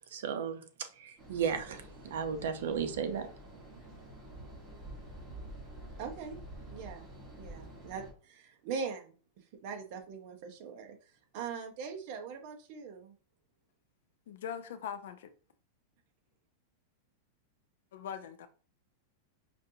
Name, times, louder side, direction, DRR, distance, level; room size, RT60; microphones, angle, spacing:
voice 1, 0.1-3.3, right 7 dB, 80° right, 0.7 m, -35 dB
sound 1, 1.2-8.1, right 1 dB, 25° right, 1.4 m, -48 dB
voice 2, 6.0-6.4 6.7-7.1 7.4-9.1 9.6-11.0 11.3-13.1, right 6 dB, 50° right, 0.8 m, -41 dB
voice 3, 14.3-15.3 17.9-18.5, left 8 dB, 75° left, 0.5 m, -41 dB
5.1 x 2.6 x 2.7 m
supercardioid pair, 155°, 0 cm